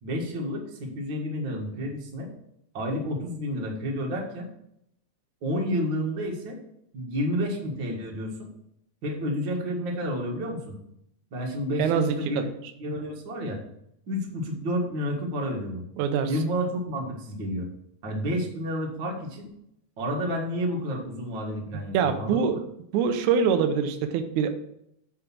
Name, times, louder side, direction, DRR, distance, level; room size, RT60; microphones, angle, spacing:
voice 1, 0.0-2.3 2.7-4.5 5.4-6.6 6.9-8.5 9.0-10.8 11.3-12.5 12.8-13.6 14.1-15.8 16.3-17.7 18.0-19.5 20.0-22.6, equal, 45° right, 0 dB, 2.1 m, -30 dB
voice 2, 11.8-12.5 16.0-16.3 21.9-22.6 22.9-24.5, right 7 dB, 80° right, 7 dB, 2.2 m, -24 dB
8.8 x 4.6 x 6.1 m, 0.76 s
omnidirectional pair, 3.5 m